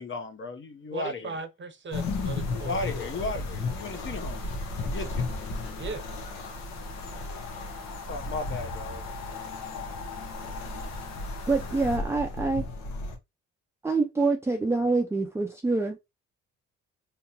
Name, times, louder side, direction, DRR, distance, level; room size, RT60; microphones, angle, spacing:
voice 1, 0.0-1.4 2.5-4.4 4.8-5.3 8.1-9.1, left 3 dB, 40° left, 0.8 m, -35 dB
voice 2, 0.9-2.8 5.8-6.1, right 4 dB, 40° right, 0.8 m, -37 dB
sound 1, 1.9-13.2, left 2 dB, 80° left, 1.2 m, -35 dB
sound 2, 1.9-12.0, left 6 dB, 60° left, 1.1 m, -44 dB
voice 3, 11.5-12.7 13.8-16.0, right 3 dB, 10° right, 0.5 m, -26 dB
3.5 x 2.9 x 2.8 m
cardioid pair, 90°, 30 cm